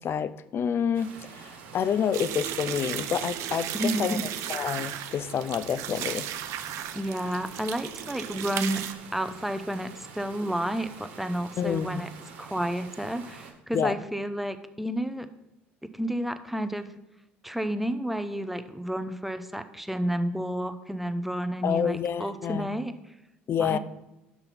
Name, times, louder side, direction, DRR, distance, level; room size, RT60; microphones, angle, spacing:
voice 1, 0.0-4.2 4.5-6.3 11.6-12.0 13.7-13.9 21.6-22.7 23.5-23.8, left 8 dB, 45° left, 15 dB, 0.5 m, -28 dB
sound 1, 0.9-13.5, right 6 dB, 80° right, 1.2 m, -47 dB
sound 2, 2.1-8.9, right 11 dB, 65° right, 0.6 m, -35 dB
voice 2, 3.7-4.2 6.9-8.8 9.1-12.1 12.4-15.3 15.8-16.9 17.4-22.9 23.6-23.8, right 1 dB, 5° right, 9 dB, 0.6 m, -31 dB
6.0 x 5.7 x 5.3 m, 0.92 s
hypercardioid pair, 65°, 6 cm